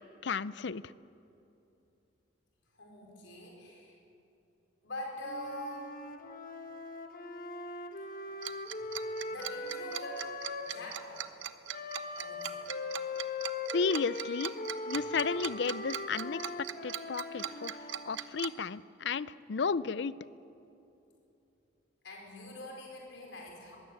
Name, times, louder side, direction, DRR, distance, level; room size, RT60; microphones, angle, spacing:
voice 1, 0.2-0.8 13.7-14.5 14.9-16.5 16.8-17.8 18.1-20.1, left 5 dB, 60° left, 18 dB, 0.5 m, -33 dB
voice 2, 2.7-4.0 4.8-5.9 9.3-10.3 10.6-11.3 12.2-12.6 22.0-23.8, left 1 dB, 80° left, -1 dB, 4.8 m, -44 dB
Wind instrument woodwind instrument, 5.2-11.0 11.7-18.2, left 2 dB, 45° left, 1.3 m, -40 dB
Tick-tock, 8.4-18.5, right 10 dB, 85° right, 0.8 m, -39 dB
22.0 x 16.0 x 7.8 m, 2.8 s
head